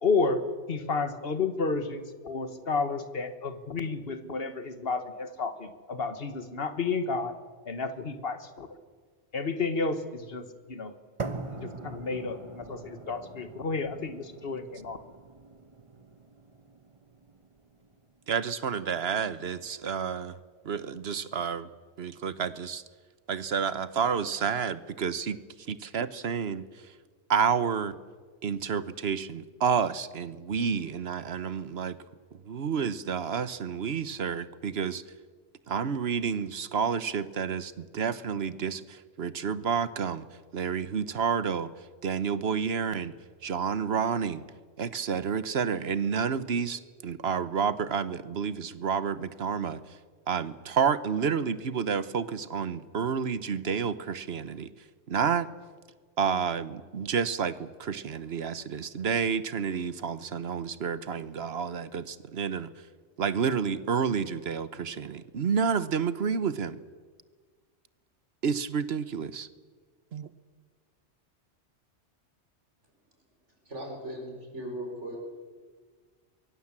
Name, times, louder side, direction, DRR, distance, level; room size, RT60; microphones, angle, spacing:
voice 1, 0.0-0.4 0.7-7.3 7.7-8.7 9.3-10.9 11.5-15.0, left 4 dB, 55° left, 10 dB, 1.8 m, -31 dB
sound 1, 11.2-19.2, right 3 dB, 30° right, 1.2 m, -43 dB
voice 2, 18.3-20.3 20.6-21.7 22.0-22.8 23.3-25.4 25.7-26.6 27.3-28.0 28.4-32.0 32.5-35.0 35.7-40.3 40.5-41.7 42.0-43.1 43.4-44.4 44.8-49.8 50.3-54.7 55.1-55.5 56.2-62.7 63.2-66.8 68.4-69.5 70.1-70.3, right 6 dB, 65° right, 15 dB, 1.2 m, -30 dB
voice 3, 73.7-75.2, right 1 dB, 85° right, 0 dB, 5.1 m, -38 dB
23.5 x 23.0 x 7.5 m, 1.5 s
omnidirectional pair, 1.2 m